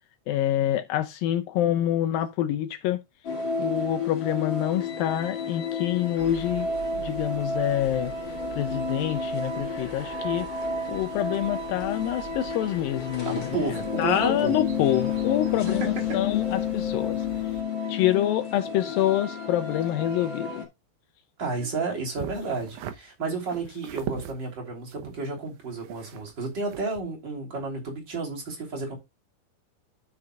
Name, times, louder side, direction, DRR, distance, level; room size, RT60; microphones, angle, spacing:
voice 1, 0.3-3.0 3.6-6.7 7.0-8.1 8.6-10.5 10.9-17.5 17.9-20.7, left 12 dB, 80° left, 2.3 m, -26 dB
sound 1, 3.2-20.6, left 5 dB, 35° left, 2.5 m, -31 dB
sound 2, 6.2-17.6, right 7 dB, 55° right, 1.8 m, -45 dB
voice 2, 13.3-14.6 15.8-15.9 21.4-29.0, right 3 dB, 30° right, 3.6 m, -32 dB
sound 3, 22.2-23.0 23.4-24.3 24.9-26.4 26.7-27.0, right 10 dB, 75° right, 1.8 m, -38 dB
13.5 x 6.3 x 2.4 m
omnidirectional pair, 4.3 m